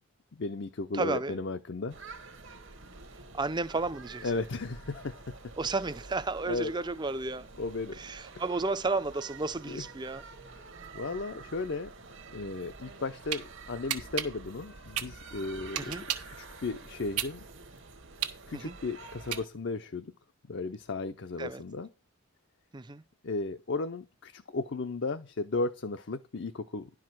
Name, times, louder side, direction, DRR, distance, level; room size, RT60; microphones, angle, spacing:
voice 1, 0.3-2.0 4.2-5.4 6.5-6.7 7.6-8.0 9.7-9.8 10.5-11.9 12.3-16.0 16.3-17.5 18.5-20.1 20.5-21.9 23.2-26.9, left 3 dB, 50° left, 0.6 m, -35 dB
voice 2, 0.9-1.4 3.3-4.3 5.6-7.5 8.0-10.2 15.8-16.0 18.5-18.8 21.4-21.6 22.7-23.0, right 3 dB, 20° right, 0.5 m, -32 dB
sound 1, 1.9-19.5, right 3 dB, 55° right, 1.1 m, -48 dB
sound 2, 13.0-13.4 13.9-16.4 16.8-19.8, right 11 dB, 90° right, 1.3 m, -34 dB
11.5 x 4.8 x 6.0 m
head